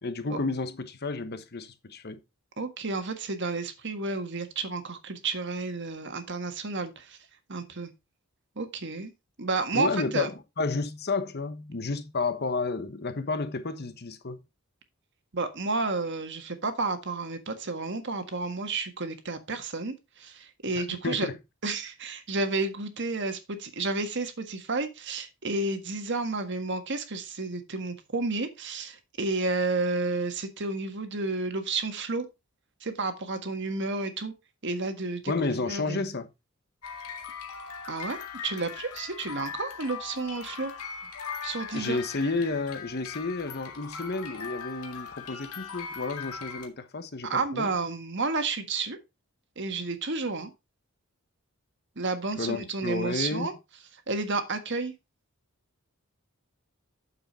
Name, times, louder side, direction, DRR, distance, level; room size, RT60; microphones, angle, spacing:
voice 1, 0.0-2.2 9.7-14.4 20.7-21.4 35.3-36.3 41.7-47.7 52.4-53.5, left 3 dB, 45° left, 1.1 m, -31 dB
voice 2, 2.6-7.2 7.5-7.9 8.6-9.1 9.4-10.3 15.3-21.3 21.6-32.3 32.8-34.3 34.6-35.3 35.7-36.0 37.9-38.2 38.4-40.7 41.4-42.0 47.2-49.0 49.6-50.5 52.0-53.5 54.1-54.9, right 3 dB, 55° right, 1.5 m, -31 dB
sound 1, 36.8-46.7, left 6 dB, 90° left, 1.9 m, -40 dB
8.7 x 6.9 x 4.1 m
head